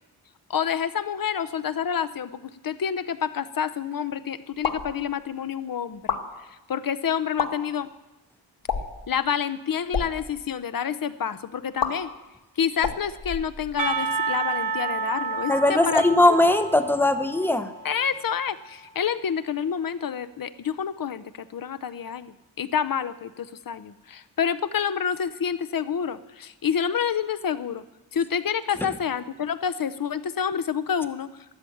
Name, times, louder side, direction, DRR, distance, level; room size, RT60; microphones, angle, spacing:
voice 1, 0.5-6.2 6.7-7.9 9.1-12.1 12.6-16.4 17.8-27.8 28.1-31.3, left 7 dB, 50° left, 14 dB, 0.7 m, -28 dB
sound 1, 4.5-4.9 5.9-6.2 7.2-7.5 8.6-9.0 9.8-10.1 11.8-11.9 12.8-13.9, left 6 dB, 80° left, 1.7 m, -29 dB
Percussion, 13.8-18.6, right 4 dB, 50° right, 1.2 m, -30 dB
voice 2, 15.5-17.7, left 1 dB, 5° left, 9 dB, 0.8 m, -20 dB
13.0 x 11.5 x 8.5 m, 1.0 s
wide cardioid pair, 155°, 43 cm